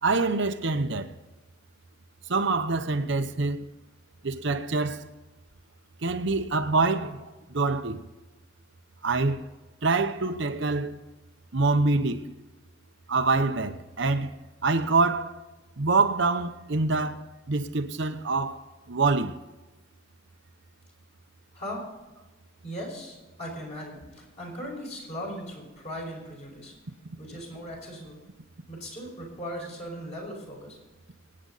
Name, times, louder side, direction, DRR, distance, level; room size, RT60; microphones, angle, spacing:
voice 1, 0.0-1.1 2.3-3.7 4.2-5.1 6.0-8.1 9.0-9.4 9.8-11.0 11.5-12.3 13.1-14.3 14.6-15.3 15.8-18.6 18.9-19.3, right 3 dB, 60° right, 0.8 m, -25 dB
voice 2, 21.5-21.9 22.6-26.7 27.2-28.2 28.7-30.8, equal, 35° left, 4.9 m, -38 dB
24.5 x 8.7 x 4.0 m
head